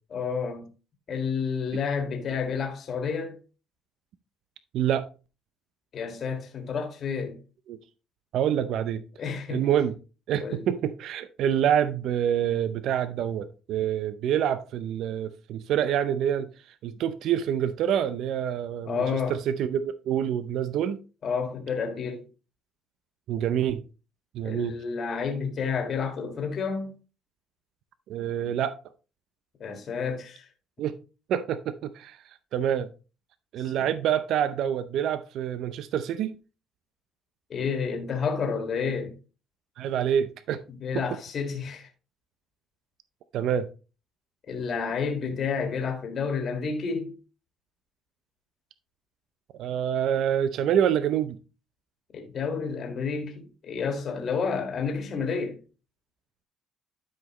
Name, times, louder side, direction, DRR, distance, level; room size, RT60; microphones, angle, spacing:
voice 1, 0.1-0.7 1.1-3.4 5.9-7.4 9.2-9.7 10.4-10.7 18.9-19.4 21.2-22.2 24.4-26.9 29.6-30.5 33.7-33.9 37.5-39.1 40.8-41.9 44.5-47.1 52.1-55.6, left 5 dB, 50° left, 1.8 m, -30 dB
voice 2, 4.7-5.1 7.7-7.8 8.3-9.0 9.5-9.9 10.3-16.5 16.8-21.0 23.3-23.8 24.3-24.8 28.1-28.8 30.8-31.0 31.3-32.2 32.5-32.9 33.5-36.3 39.8-40.6 40.9-41.0 43.3-43.7 49.6-51.4, right 9 dB, 70° right, 0.5 m, -26 dB
12.0 x 5.0 x 3.0 m
cardioid pair, 100°, 0 cm